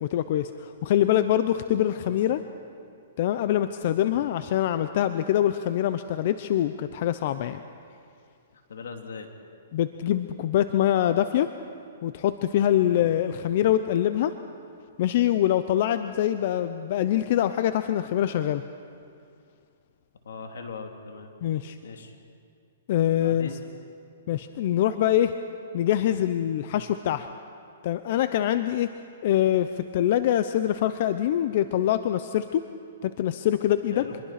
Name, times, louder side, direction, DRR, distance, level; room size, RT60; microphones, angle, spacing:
voice 1, 0.0-2.4 3.2-7.6 9.7-11.5 12.0-14.3 15.0-18.6 21.4-21.8 22.9-23.5 24.3-25.3 25.7-27.3 27.8-28.9 29.2-32.6 33.0-34.0, left 11 dB, 50° left, 11 dB, 0.7 m, -24 dB
voice 2, 8.5-9.3 12.8-13.1 20.2-21.3 21.8-22.1 23.2-23.6 33.9-34.2, left 5 dB, 80° left, 4 dB, 2.9 m, -40 dB
26.0 x 21.5 x 5.9 m, 2.4 s
hypercardioid pair, 145°, 0 cm